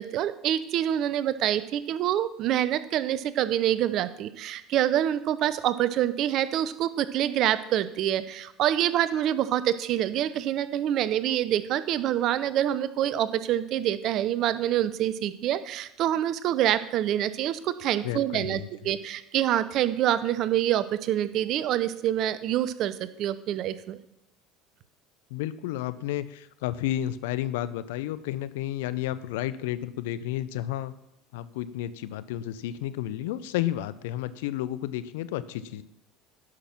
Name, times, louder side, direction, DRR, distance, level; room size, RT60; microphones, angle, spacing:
voice 1, 0.0-24.0, right 11 dB, 55° right, 14 dB, 0.6 m, -26 dB
voice 2, 18.0-18.9 25.3-30.9 31.3-35.8, left 13 dB, 75° left, 15 dB, 0.5 m, -32 dB
11.0 x 6.2 x 5.8 m, 0.81 s
hypercardioid pair, 70°, 0 cm